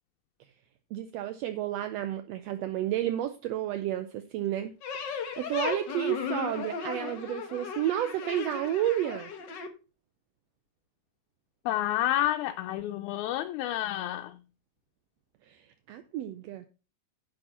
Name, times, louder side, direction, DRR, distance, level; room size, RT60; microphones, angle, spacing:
voice 1, 0.9-4.7 5.4-9.3 15.5-16.7, right 12 dB, 80° right, 1.6 m, -31 dB
sound 1, 4.8-9.7, left 6 dB, 55° left, 1.2 m, -36 dB
voice 2, 11.7-14.4, left 13 dB, 90° left, 2.0 m, -29 dB
10.0 x 6.2 x 4.1 m
omnidirectional pair, 3.3 m